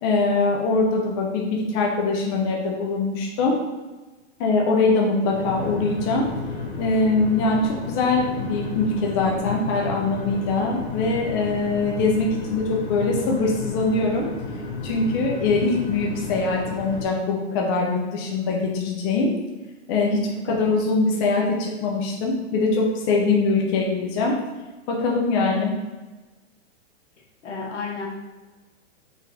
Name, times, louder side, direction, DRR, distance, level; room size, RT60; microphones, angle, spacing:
voice 1, 0.0-3.5 4.4-6.3 6.8-14.3 14.8-19.3 19.9-24.3 24.9-25.7, left 3 dB, 20° left, -1 dB, 0.4 m, -22 dB
sound 1, 5.3-17.0, left 4 dB, 45° left, 0.8 m, -32 dB
voice 2, 20.0-20.4 27.4-28.1, left 4 dB, 75° left, 0 dB, 1.1 m, -32 dB
3.9 x 2.4 x 4.2 m, 1.2 s
hypercardioid pair, 145°, 36 cm